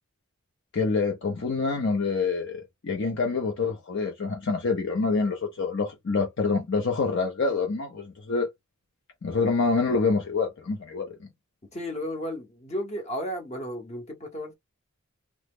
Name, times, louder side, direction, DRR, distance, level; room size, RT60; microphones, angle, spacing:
voice 1, 0.7-8.5 9.2-11.1, left 4 dB, 55° left, 0.6 m, -26 dB
voice 2, 11.7-14.5, equal, 30° left, 0.9 m, -33 dB
3.0 x 2.1 x 3.4 m
head